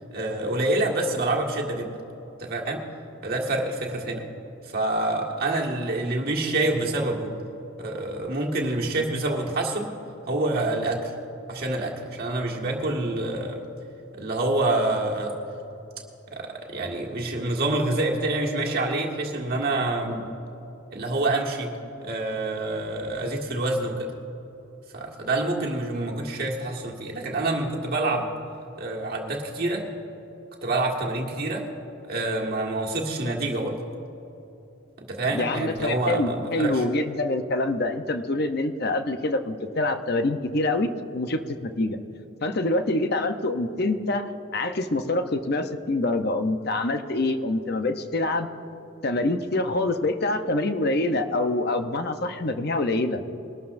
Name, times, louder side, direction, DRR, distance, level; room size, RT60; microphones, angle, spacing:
voice 1, 0.1-1.9 2.4-2.8 3.2-4.2 4.7-7.3 7.8-9.9 10.3-11.1 11.5-13.6 14.1-15.4 16.3-20.2 20.9-21.7 22.0-24.1 24.9-28.3 28.8-29.9 30.6-31.7 32.0-33.8 35.0-36.8, right 2 dB, 45° right, -2 dB, 1.8 m, -27 dB
voice 2, 35.3-42.0 42.4-48.5 49.0-53.2, left 2 dB, 50° left, 8 dB, 0.7 m, -26 dB
22.0 x 13.0 x 2.6 m, 3.0 s
head